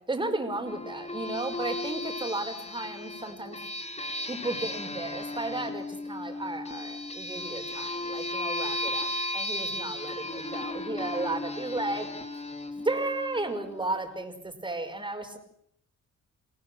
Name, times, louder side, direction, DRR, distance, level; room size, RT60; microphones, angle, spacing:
voice 1, 0.1-3.6 4.3-12.1 12.8-15.4, right 2 dB, 15° right, 6 dB, 5.5 m, -34 dB
sound 1, 0.6-13.9, left 1 dB, 20° left, 2.8 m, -35 dB
28.5 x 17.5 x 7.9 m, 0.68 s
cardioid pair, 90°, 30 cm